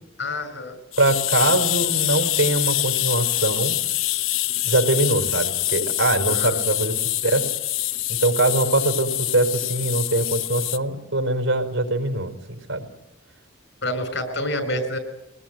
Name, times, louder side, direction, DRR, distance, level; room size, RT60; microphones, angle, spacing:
voice 1, 0.2-0.8 1.3-1.6 6.3-6.6 13.8-15.0, left 1 dB, 65° left, 9 dB, 6.2 m, -28 dB
sound 1, 0.9-10.8, left 15 dB, 80° left, 0.8 m, -25 dB
voice 2, 1.0-3.8 4.6-7.5 8.2-12.4 12.7-12.8, right 2 dB, 80° right, 6 dB, 4.7 m, -22 dB
24.5 x 20.0 x 9.2 m, 0.94 s
head